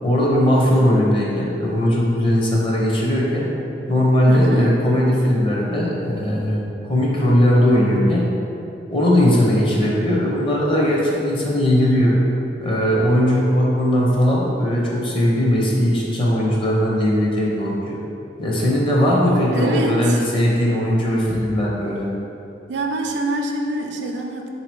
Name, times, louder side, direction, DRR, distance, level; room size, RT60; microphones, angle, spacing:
voice 1, 0.0-3.5 3.9-6.6 6.9-8.3 8.9-12.2 12.6-18.0 18.4-22.1, equal, 30° left, -4 dB, 0.7 m, -18 dB
voice 2, 4.3-4.8 18.6-18.7 19.5-20.2 22.7-24.5, right 2 dB, 80° right, 2 dB, 0.4 m, -25 dB
3.8 x 2.8 x 4.4 m, 2.8 s
head